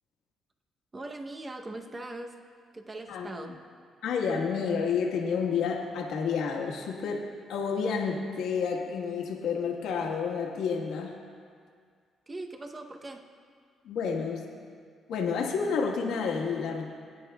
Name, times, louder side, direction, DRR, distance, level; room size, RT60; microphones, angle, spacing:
voice 1, 0.9-2.3 2.7-3.6 12.3-13.2, right 2 dB, 25° right, 4 dB, 0.8 m, -40 dB
voice 2, 3.1-3.5 4.0-7.2 7.5-11.1 13.8-14.4 15.1-16.8, left 5 dB, 85° left, 0 dB, 1.4 m, -30 dB
21.0 x 10.0 x 2.3 m, 2.1 s
cardioid pair, 90°, 0 cm